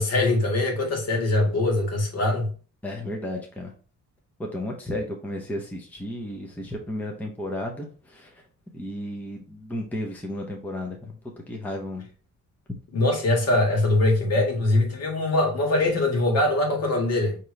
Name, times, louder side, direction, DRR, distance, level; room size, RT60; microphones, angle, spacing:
voice 1, 0.0-2.5 12.9-17.4, left 2 dB, 55° left, 1.7 m, -22 dB
voice 2, 2.8-3.7 4.4-8.4 8.7-12.0, left 1 dB, 5° left, 0.7 m, -33 dB
5.2 x 2.9 x 3.1 m
cardioid pair, 135°, 30 cm